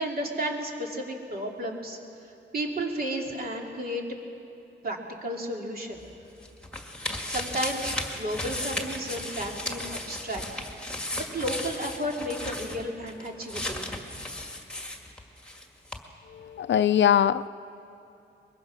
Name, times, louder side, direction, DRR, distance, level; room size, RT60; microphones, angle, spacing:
voice 1, 0.0-2.0 2.5-4.0 4.8-6.0 7.3-10.4 11.1-13.9, right 1 dB, 50° right, 0 dB, 2.8 m, -33 dB
sound 1, 6.0-15.6 15.9-16.0, left 1 dB, 5° left, 1.8 m, -35 dB
voice 2, 16.3-17.5, left 9 dB, 70° left, 15 dB, 0.5 m, -22 dB
23.0 x 21.5 x 6.2 m, 2.7 s
wide cardioid pair, 130°, 19 cm